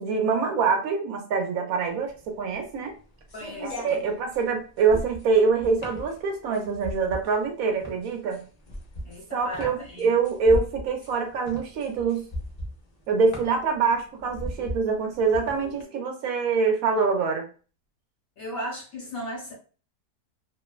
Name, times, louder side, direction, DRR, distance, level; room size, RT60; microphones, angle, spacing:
voice 1, 0.0-2.9 3.6-8.4 9.3-12.3 13.1-17.5, right 4 dB, 70° right, 4 dB, 1.0 m, -25 dB
sound 1, 1.9-15.8, equal, 90° left, 0.3 m, -38 dB
voice 2, 3.3-3.8 9.0-10.1 18.4-19.5, equal, 60° left, -3 dB, 1.3 m, -36 dB
2.9 x 2.1 x 2.3 m, 0.37 s
omnidirectional pair, 1.7 m